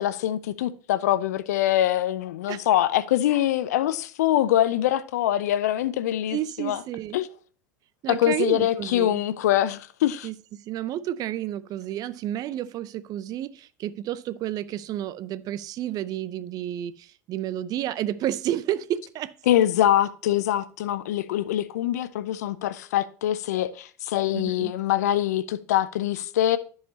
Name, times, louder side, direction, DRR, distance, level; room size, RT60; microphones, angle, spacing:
voice 1, 0.0-6.8 7.1-7.3 8.1-10.3 19.5-26.6, left 12 dB, 70° left, 0.6 m, -24 dB
voice 2, 6.3-7.2 8.0-9.2 10.2-19.3 24.3-24.7, right 12 dB, 45° right, 0.5 m, -31 dB
14.0 x 4.8 x 2.8 m
hypercardioid pair, 80°, 9 cm